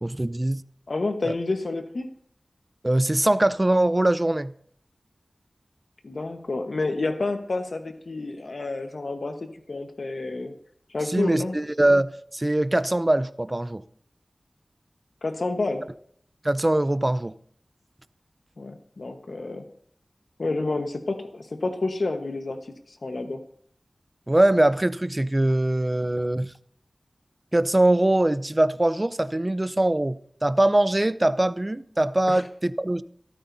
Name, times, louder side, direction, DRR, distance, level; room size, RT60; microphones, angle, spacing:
voice 1, 0.0-0.6 1.2-1.3 2.8-4.5 11.1-13.8 16.4-17.3 24.3-26.5 27.5-33.0, right 1 dB, 25° right, 0.5 m, -22 dB
voice 2, 0.9-2.1 6.0-10.5 10.9-11.6 15.2-15.8 18.6-19.6 20.4-22.6 22.9-23.4 32.3-32.4, left 3 dB, 75° left, 1.2 m, -29 dB
17.0 x 13.5 x 2.7 m
wide cardioid pair, 55°, 0 cm